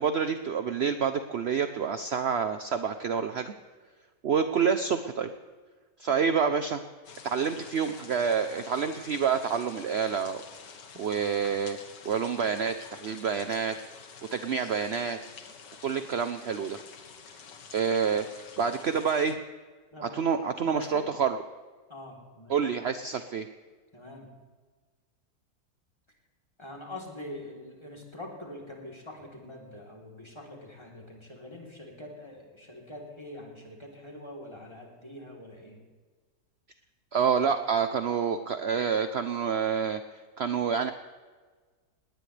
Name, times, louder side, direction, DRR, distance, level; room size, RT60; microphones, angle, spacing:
voice 1, 0.0-3.5 4.2-5.3 6.0-6.8 7.2-10.4 11.0-11.8 12.0-13.7 14.3-15.2 15.8-16.8 17.7-19.4 20.1-21.4 22.5-23.5 37.1-40.0 40.4-40.9, right 6 dB, 60° right, 9 dB, 0.7 m, -28 dB
sound 1, 7.0-19.3, left 6 dB, 75° left, 1.9 m, -48 dB
voice 2, 20.6-21.0 21.9-22.6 23.9-24.3 26.6-35.8, left 1 dB, 15° left, -1 dB, 3.4 m, -44 dB
19.5 x 18.5 x 3.4 m, 1.4 s
omnidirectional pair, 1.9 m